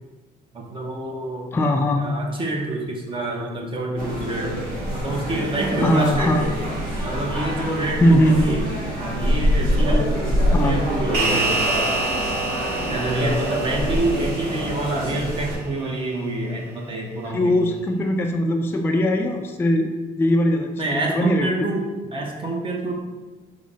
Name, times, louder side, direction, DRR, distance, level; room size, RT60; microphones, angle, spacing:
voice 1, 0.5-1.5 2.0-4.6 4.9-6.5 7.0-8.7 9.0-11.7 12.9-17.6 20.8-22.9, right 2 dB, 30° right, 0 dB, 0.7 m, -27 dB
voice 2, 1.5-2.0 5.8-6.5 8.0-8.4 10.5-10.8 17.3-19.9 20.2-21.7, left 1 dB, 15° left, 3 dB, 0.3 m, -20 dB
sound 1, 4.0-15.6, equal, 55° right, 1.4 m, -25 dB
sound 2, 11.1-15.8, right 2 dB, 75° right, 0.9 m, -27 dB
4.8 x 2.0 x 4.0 m, 1.3 s
cardioid pair, 110°, 17 cm